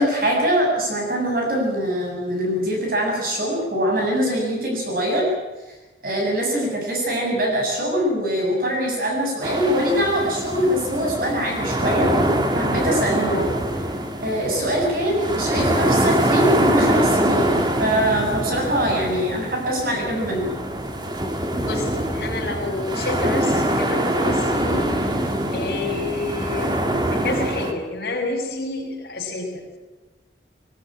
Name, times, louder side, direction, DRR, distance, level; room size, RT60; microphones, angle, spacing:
voice 1, 0.0-5.3 6.0-12.1 12.5-13.4 14.2-20.5, equal, 50° right, 0 dB, 7.4 m, -23 dB
sound 1, 9.4-27.7, right 1 dB, 25° right, 1.9 m, -23 dB
voice 2, 13.2-13.5 21.6-25.0 25.5-29.8, left 3 dB, 55° left, 0 dB, 6.0 m, -29 dB
21.0 x 20.0 x 8.9 m, 1.1 s
head